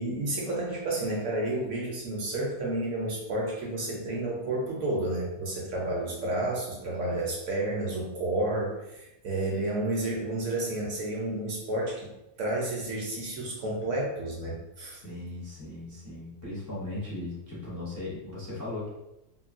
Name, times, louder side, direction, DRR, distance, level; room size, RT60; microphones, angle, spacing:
voice 1, 0.0-12.1 12.4-15.0, right 1 dB, 65° right, -3 dB, 0.8 m, -31 dB
voice 2, 14.9-18.9, left 2 dB, 25° left, -6 dB, 0.3 m, -38 dB
2.9 x 2.6 x 2.5 m, 0.92 s
omnidirectional pair, 1.6 m